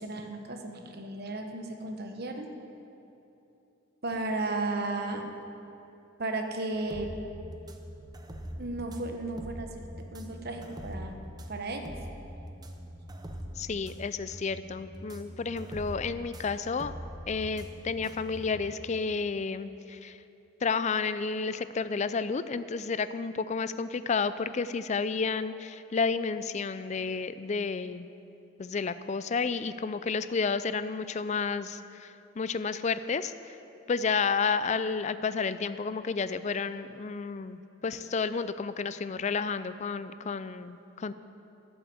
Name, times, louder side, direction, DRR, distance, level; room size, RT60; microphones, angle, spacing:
voice 1, 0.0-2.5 4.0-5.2 6.2-7.1 8.6-9.8 10.1-11.1 11.5-11.9, right 2 dB, 50° right, 4 dB, 1.1 m, -34 dB
sound 1, 6.7-18.8, equal, 20° right, 0.7 m, -43 dB
voice 2, 13.6-16.9 17.3-20.2 20.6-28.1 28.6-33.6 33.9-41.1, left 5 dB, 35° left, 14 dB, 0.4 m, -31 dB
12.5 x 7.8 x 7.8 m, 2.9 s
head